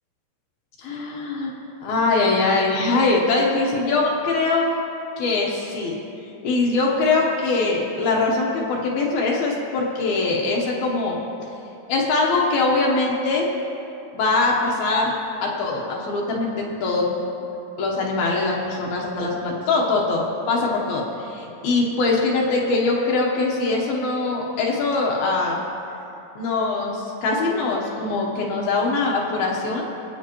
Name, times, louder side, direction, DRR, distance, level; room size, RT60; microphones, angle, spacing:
voice 1, 0.8-1.6 1.8-4.8 5.2-5.9 6.2-11.2 11.9-13.5 14.1-15.1 15.4-17.2 17.8-25.6 26.4-29.9, left 3 dB, 70° left, -2 dB, 2.7 m, -22 dB
24.5 x 8.5 x 3.0 m, 2.8 s
omnidirectional pair, 4.8 m